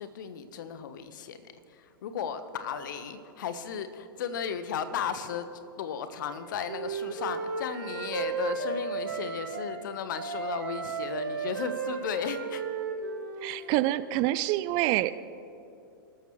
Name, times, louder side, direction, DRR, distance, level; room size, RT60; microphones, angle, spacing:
voice 1, 0.0-5.5 5.8-12.6 13.5-13.6, left 7 dB, 55° left, 11 dB, 1.2 m, -35 dB
Wind instrument woodwind instrument, 6.2-9.8 10.1-13.9, right 5 dB, 60° right, 4.0 m, -35 dB
voice 2, 13.4-15.1, right 16 dB, 35° right, 16 dB, 0.5 m, -26 dB
28.5 x 13.5 x 3.2 m, 2.7 s
figure-of-eight pair, 100°, 12 cm